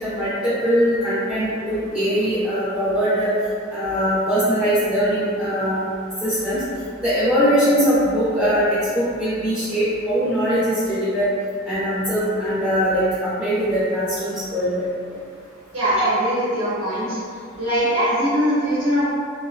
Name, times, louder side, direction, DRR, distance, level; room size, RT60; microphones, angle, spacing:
voice 1, 0.0-3.3 3.7-5.8 6.2-6.6 7.0-11.3 11.6-14.9 16.0-16.1, equal, 5° right, -13 dB, 0.4 m, -21 dB
voice 2, 15.7-17.2 17.6-19.0, equal, 75° right, -12 dB, 0.8 m, -21 dB
2.7 x 2.0 x 2.4 m, 2.3 s
head